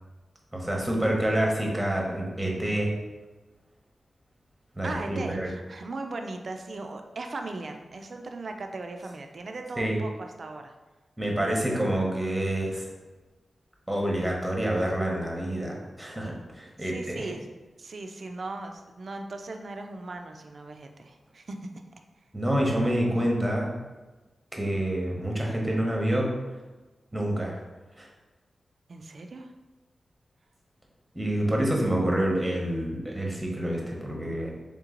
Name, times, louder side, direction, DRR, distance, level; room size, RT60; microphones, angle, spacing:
voice 1, 0.5-2.9 4.7-5.5 9.8-10.0 11.2-12.9 13.9-17.3 22.3-23.7 24.5-26.3 27.1-27.6 28.0-28.1 31.1-34.5, right 1 dB, 10° right, -1 dB, 0.8 m, -27 dB
voice 2, 4.8-10.7 16.8-17.5 17.8-21.7 28.9-29.5, right 2 dB, 55° right, 5 dB, 0.4 m, -38 dB
3.6 x 3.0 x 3.7 m, 1.2 s
wide cardioid pair, 115°, 0 cm